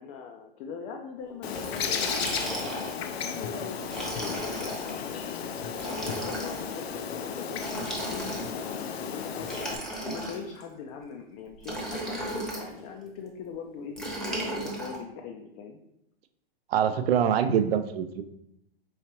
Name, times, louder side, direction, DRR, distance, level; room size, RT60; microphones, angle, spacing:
voice 1, 0.0-2.3 3.2-5.5 5.8-9.6 10.0-14.0 14.4-15.8, left 6 dB, 30° left, 3 dB, 0.4 m, -41 dB
Bird, 1.4-9.8, left 7 dB, 85° left, 0.5 m, -34 dB
Liquid, 1.6-3.0 3.8-4.9 5.7-6.6 7.5-8.7 9.4-10.6 11.6-12.7 14.0-15.0, right 1 dB, ahead, 0.8 m, -35 dB
voice 2, 16.7-18.2, right 8 dB, 75° right, 9 dB, 0.5 m, -24 dB
4.7 x 2.8 x 2.9 m, 0.81 s
hypercardioid pair, 125°, 31 cm